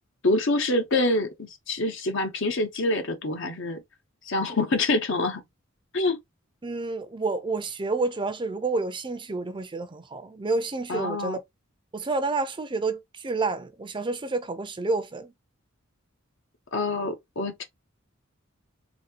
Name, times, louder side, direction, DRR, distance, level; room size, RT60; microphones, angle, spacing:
voice 1, 0.2-3.8 4.3-5.4 5.9-6.2 10.9-11.4 16.7-17.6, left 2 dB, 65° left, 0.9 m, -26 dB
voice 2, 6.6-11.4 11.9-15.3, right 3 dB, 25° right, 0.5 m, -29 dB
4.1 x 2.8 x 2.8 m
head